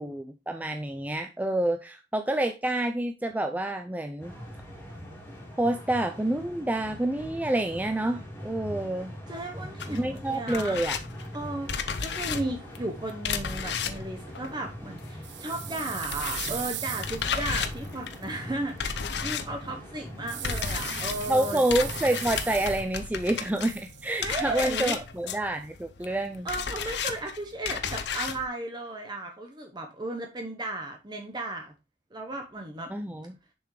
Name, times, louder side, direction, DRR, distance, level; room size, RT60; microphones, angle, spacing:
voice 1, 0.0-4.3 5.6-9.1 9.9-11.0 21.3-26.5 32.9-33.4, right 1 dB, 10° right, 6 dB, 0.4 m, -28 dB
sound 1, 4.2-22.8, equal, 10° left, 2.3 m, -42 dB
voice 2, 9.3-10.8 11.3-21.6 24.2-25.0 26.0-26.1 26.4-31.7 32.1-32.9, right 2 dB, 25° right, 3 dB, 0.9 m, -35 dB
sound 2, 9.8-15.3 15.6-28.4, left 6 dB, 70° left, 0.8 m, -34 dB
sound 3, 15.2-18.3 20.3-23.1 23.3-24.4, right 13 dB, 75° right, 0.7 m, -39 dB
6.9 x 5.9 x 3.1 m, 0.29 s
head